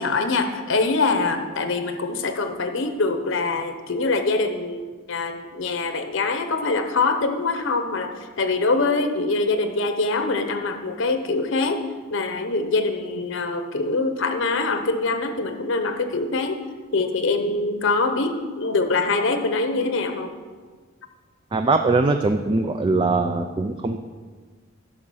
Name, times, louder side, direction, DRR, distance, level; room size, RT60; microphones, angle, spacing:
voice 1, 0.0-4.8 5.1-8.1 8.4-11.8 12.1-16.6 16.9-20.3, left 3 dB, 65° left, 7 dB, 0.9 m, -24 dB
voice 2, 21.5-24.0, right 3 dB, 25° right, 6 dB, 0.4 m, -21 dB
11.0 x 6.5 x 6.3 m, 1.5 s
head